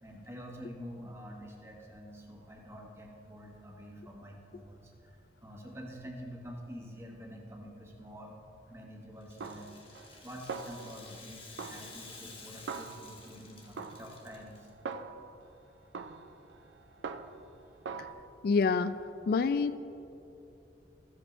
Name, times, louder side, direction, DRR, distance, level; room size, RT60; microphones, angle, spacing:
voice 1, 0.0-8.4 8.7-9.8 10.2-14.7, equal, 15° right, 0 dB, 1.1 m, -47 dB
Rattle (instrument), 9.2-14.7, left 4 dB, 30° left, 1.3 m, -52 dB
Snare drum, 9.4-10.2 10.5-11.3 11.6-13.4 13.8-15.4 15.9-17.5 17.9-18.1, right 5 dB, 85° right, 0.5 m, -43 dB
voice 2, 18.4-18.9 19.3-19.8, left 4 dB, 55° left, 13 dB, 0.3 m, -27 dB
14.0 x 8.0 x 3.1 m, 2.8 s
head